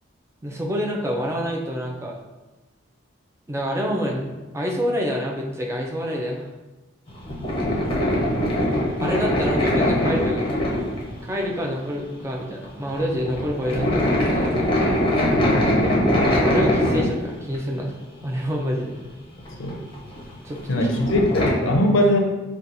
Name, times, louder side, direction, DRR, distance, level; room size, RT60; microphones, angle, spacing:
voice 1, 0.4-2.2 3.5-4.3 4.5-6.5 9.0-10.7 11.2-14.5 16.2-17.9 18.2-18.9 20.4-20.9, equal, 15° right, -1 dB, 0.4 m, -27 dB
sound 1, 7.1-11.9 12.1-12.4 12.6-17.8 18.2-18.3 19.3-21.5, left 1 dB, 25° left, 0.6 m, -22 dB
voice 2, 15.3-16.3 19.6-19.8 20.7-22.2, left 1 dB, 75° left, 2 dB, 0.5 m, -22 dB
5.5 x 2.3 x 2.6 m, 1.1 s
head